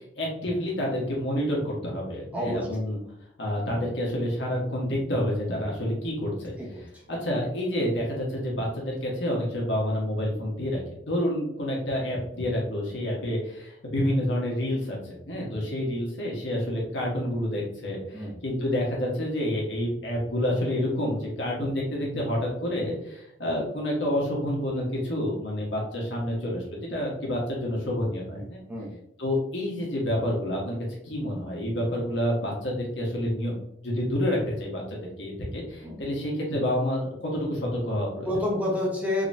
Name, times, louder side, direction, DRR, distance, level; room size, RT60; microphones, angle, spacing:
voice 1, 0.0-3.0 3.4-28.6 29.2-30.8 31.0-38.3, left 1 dB, 80° left, -3 dB, 1.3 m, -28 dB
voice 2, 2.3-2.7 6.6-6.7 18.1-18.3 28.3-28.9 35.8-36.0 38.2-39.3, left 1 dB, 10° right, -3 dB, 0.8 m, -29 dB
3.9 x 2.9 x 2.6 m, 0.76 s
head